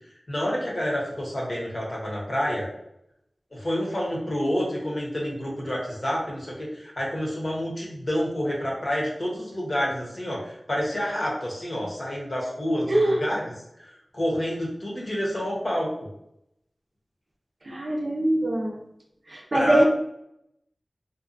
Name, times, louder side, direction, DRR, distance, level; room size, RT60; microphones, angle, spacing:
voice 1, 0.3-2.7 3.5-13.4 13.8-15.9 19.5-19.8, equal, 50° left, -4 dB, 0.9 m, -28 dB
voice 2, 12.9-13.2 17.7-18.7 19.3-19.8, right 1 dB, 50° right, 0 dB, 0.5 m, -22 dB
2.6 x 2.3 x 2.5 m, 0.79 s
wide cardioid pair, 55°, 0 cm